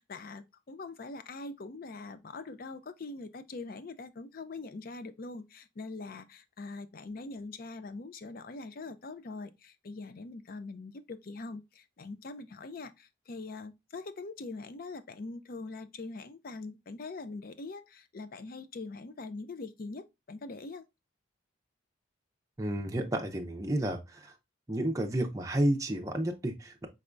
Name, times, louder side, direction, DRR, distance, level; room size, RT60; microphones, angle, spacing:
voice 1, 0.0-20.8, left 3 dB, 45° left, 0.4 m, -43 dB
voice 2, 22.6-24.3 24.7-26.9, right 1 dB, 15° right, 0.5 m, -31 dB
5.3 x 3.4 x 2.5 m
head